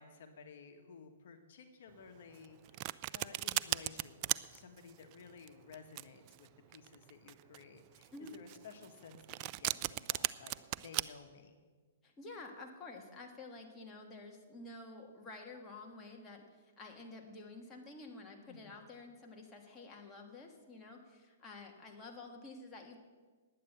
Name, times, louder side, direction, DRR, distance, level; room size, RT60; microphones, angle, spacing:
voice 1, 0.0-11.6 18.4-18.8, left 5 dB, 60° left, 6 dB, 1.4 m, -55 dB
Domestic sounds home sounds, 2.3-11.0, right 19 dB, 35° right, 0.3 m, -37 dB
voice 2, 12.0-16.4 16.8-23.0, left 3 dB, 15° left, 0 dB, 1.6 m, -50 dB
10.0 x 8.8 x 7.9 m, 1.4 s
hypercardioid pair, 145°, 0 cm